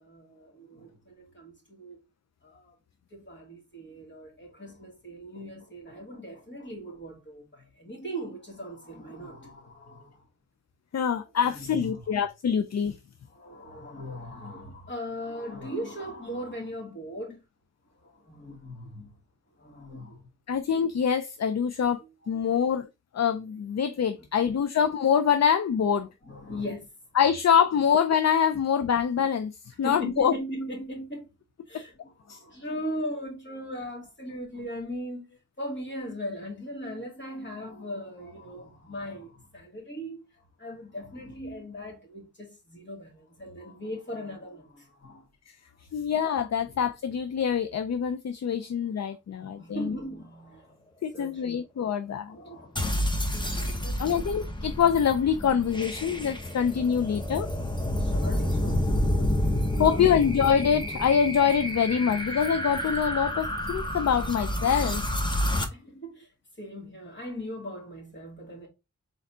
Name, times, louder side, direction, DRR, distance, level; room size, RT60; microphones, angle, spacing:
voice 1, 0.0-2.0 2.4-2.8 3.1-10.3 11.0-12.2 13.3-17.4 17.9-19.1 19.6-20.3 22.0-22.6 23.9-24.6 25.9-26.9 27.7-27.8 29.7-31.3 31.7-35.3 35.6-45.3 46.1-46.2 46.6-46.8 49.0-50.8 51.1-51.6 52.3-54.3 58.0-60.3 65.7-66.3 66.6-68.7, equal, 35° left, 2.4 m, -39 dB
voice 2, 10.9-12.9 20.5-22.0 22.3-22.9 23.1-26.1 27.2-30.3 32.3-32.4 45.9-49.9 51.0-52.4 54.0-57.5 59.8-65.0, left 7 dB, 60° left, 0.5 m, -25 dB
sound 1, 52.8-65.7, left 1 dB, 15° left, 1.0 m, -29 dB
4.2 x 4.0 x 2.7 m
wide cardioid pair, 65°, 30 cm